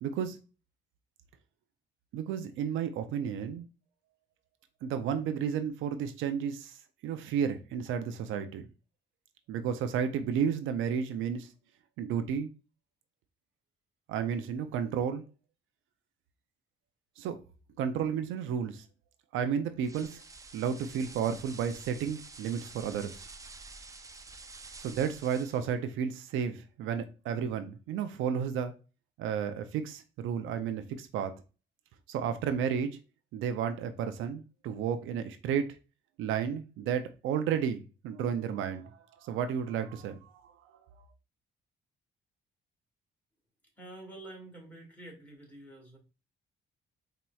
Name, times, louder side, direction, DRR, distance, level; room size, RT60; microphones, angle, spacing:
voice 1, 0.0-0.4 2.1-3.7 4.8-6.7 7.0-8.7 9.5-11.5 12.0-12.5 14.1-15.2 17.2-17.4 17.8-18.8 19.3-20.2 20.5-23.2 24.8-28.7 29.2-31.3 32.1-33.0 33.3-35.8 36.2-38.9 39.2-40.5, right 7 dB, 85° right, 0.5 m, -32 dB
sound 1, 19.8-25.7, right 3 dB, 15° right, 0.4 m, -49 dB
voice 2, 43.8-46.0, right 2 dB, 10° left, 1.9 m, -48 dB
4.2 x 2.9 x 2.3 m
cardioid pair, 90°, 20 cm